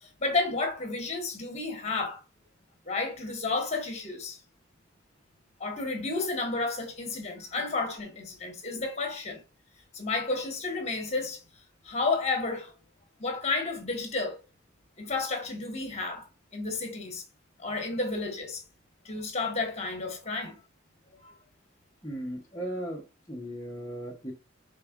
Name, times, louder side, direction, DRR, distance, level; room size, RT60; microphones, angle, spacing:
voice 1, 0.0-2.2 2.9-4.4 5.6-9.4 9.9-11.4 11.8-12.7 13.2-14.4 15.0-16.3 16.5-17.2 17.6-18.6 19.0-20.6 21.2-21.3, left 3 dB, 35° left, 1.3 m, -31 dB
voice 2, 22.0-24.3, right 1 dB, 15° left, 0.7 m, -37 dB
5.2 x 3.5 x 2.4 m
head